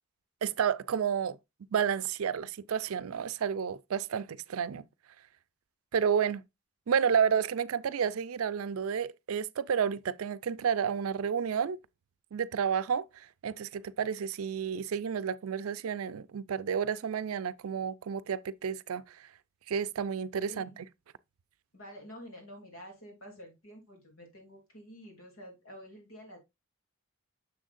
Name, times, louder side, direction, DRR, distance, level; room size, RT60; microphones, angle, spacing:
voice 1, 0.4-1.4 1.7-4.9 5.9-6.4 6.9-11.8 12.3-19.0 19.7-20.7, right 7 dB, 90° right, 0.4 m, -31 dB
voice 2, 20.5-20.9 21.7-26.4, equal, 75° left, 2.9 m, -49 dB
7.0 x 6.3 x 2.5 m
head